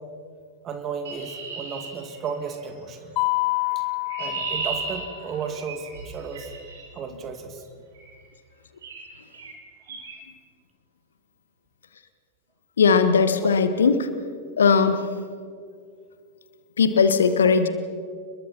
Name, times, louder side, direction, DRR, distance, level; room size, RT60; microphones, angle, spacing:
voice 1, 0.6-3.1 3.8-3.9 4.2-6.5 6.9-7.6, right 6 dB, 30° right, 6 dB, 2.5 m, -34 dB
Chirp tweet, 1.0-2.7 3.7-6.8 7.9-8.2 8.8-9.1 9.3-9.6 9.9-10.2, right 4 dB, 60° right, 5.3 m, -35 dB
Mallet percussion, 3.2-5.2, left 26 dB, 40° left, 0.6 m, -27 dB
voice 2, 12.8-14.1 14.6-15.0 16.8-17.7, left 5 dB, 70° left, 11 dB, 1.4 m, -18 dB
28.5 x 22.0 x 4.5 m, 2.2 s
figure-of-eight pair, 90°, 0 cm